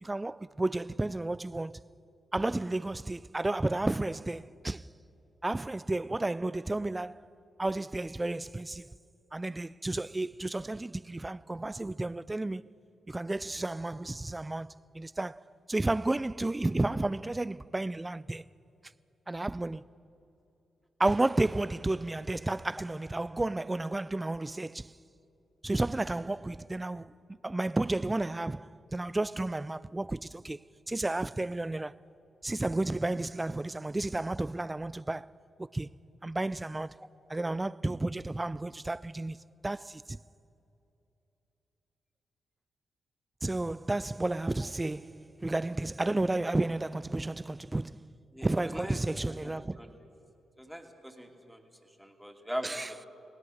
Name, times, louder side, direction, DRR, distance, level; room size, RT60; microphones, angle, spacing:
voice 1, 0.0-1.8 2.3-4.9 5.4-7.2 7.6-8.9 9.3-12.6 13.1-18.4 19.3-19.8 21.0-24.9 25.6-30.6 30.9-31.9 32.4-35.9 36.2-36.9 37.3-39.4 39.6-40.2 43.4-48.2 48.4-49.9 52.6-52.9, right 2 dB, 20° right, 0.5 m, -32 dB
voice 2, 48.3-49.0 49.4-49.9 50.6-53.1, equal, ahead, 2.8 m, -41 dB
29.0 x 18.0 x 6.5 m
cardioid pair, 60°, 0 cm